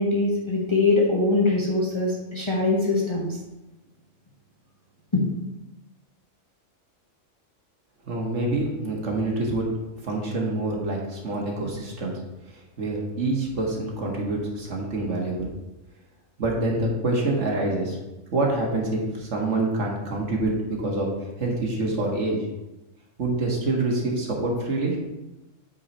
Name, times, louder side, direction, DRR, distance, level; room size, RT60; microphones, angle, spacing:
voice 1, 0.0-3.3 5.1-5.2, left 3 dB, 25° left, -3 dB, 1.1 m, -22 dB
voice 2, 8.1-9.7 10.0-12.1 12.8-15.5 16.4-18.0 18.3-21.1 21.4-22.4 23.2-25.0, right 2 dB, 65° right, -1 dB, 1.9 m, -26 dB
8.5 x 4.9 x 4.2 m, 1.0 s
omnidirectional pair, 1.3 m